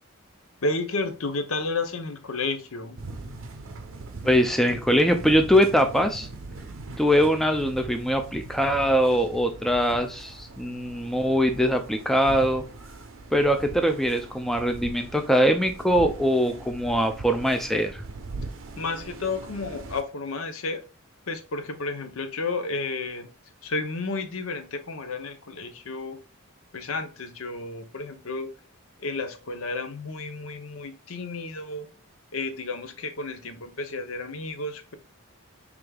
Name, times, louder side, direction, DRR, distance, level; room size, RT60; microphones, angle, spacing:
voice 1, 0.6-3.0 18.8-20.8 21.3-23.3 23.6-26.2 26.7-28.5 29.0-31.9 32.3-34.9, left 3 dB, 75° left, 0.7 m, -32 dB
sound 1, 3.0-20.0, right 3 dB, 65° right, 0.6 m, -41 dB
voice 2, 4.2-6.3 7.0-12.6 13.3-18.0, equal, ahead, 0.3 m, -22 dB
4.9 x 3.4 x 2.3 m
head